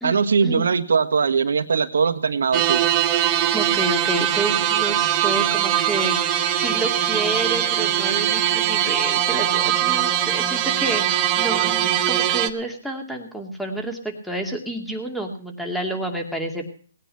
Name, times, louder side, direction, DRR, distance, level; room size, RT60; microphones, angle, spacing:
voice 1, 0.0-2.8, right 5 dB, 75° right, 7 dB, 1.6 m, -20 dB
sound 1, 2.5-12.5, right 11 dB, 25° right, 1.3 m, -21 dB
voice 2, 3.5-16.7, right 1 dB, ahead, 3 dB, 2.4 m, -29 dB
18.5 x 9.8 x 5.8 m, 0.43 s
hypercardioid pair, 150°, 0 cm